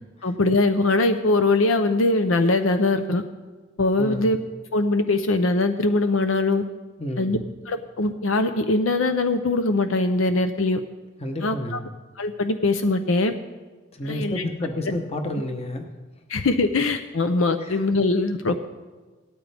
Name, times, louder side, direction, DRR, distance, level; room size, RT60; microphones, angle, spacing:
voice 1, 0.2-3.2 3.8-4.4 4.7-6.6 7.2-7.4 7.7-10.8 11.4-11.8 12.2-13.3 14.0-14.4 16.3-18.6, left 2 dB, 85° left, 9 dB, 0.7 m, -22 dB
voice 2, 4.0-4.4 7.0-7.4 11.2-11.9 13.9-15.9 17.6-17.8, left 1 dB, 30° left, 5 dB, 1.0 m, -30 dB
17.5 x 13.0 x 3.5 m, 1.3 s
head